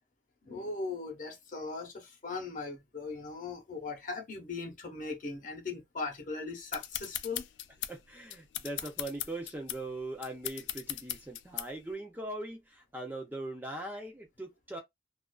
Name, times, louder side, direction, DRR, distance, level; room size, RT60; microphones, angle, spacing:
voice 1, 0.4-7.5, left 3 dB, 45° left, 0.8 m, -39 dB
sound 1, 6.7-11.9, left 13 dB, 70° left, 0.3 m, -39 dB
voice 2, 7.9-14.8, right 1 dB, 10° right, 0.4 m, -40 dB
2.4 x 2.3 x 2.2 m
head